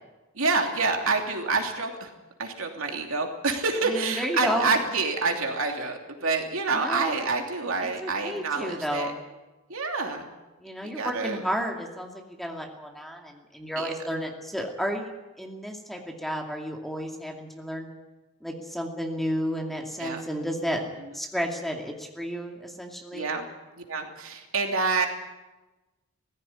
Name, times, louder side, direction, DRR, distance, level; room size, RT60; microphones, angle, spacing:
voice 1, 0.3-2.1 2.4-9.1 9.7-10.3 10.8-11.4 13.8-13.9 20.0-20.3 23.1-23.5 23.9-25.1, right 4 dB, 65° right, 3 dB, 3.0 m, -27 dB
voice 2, 3.8-4.7 6.7-7.2 7.8-9.2 10.6-15.1 15.4-17.9 18.4-20.8 21.1-23.3, equal, ahead, 1 dB, 2.4 m, -32 dB
18.5 x 15.5 x 9.8 m, 1.1 s
head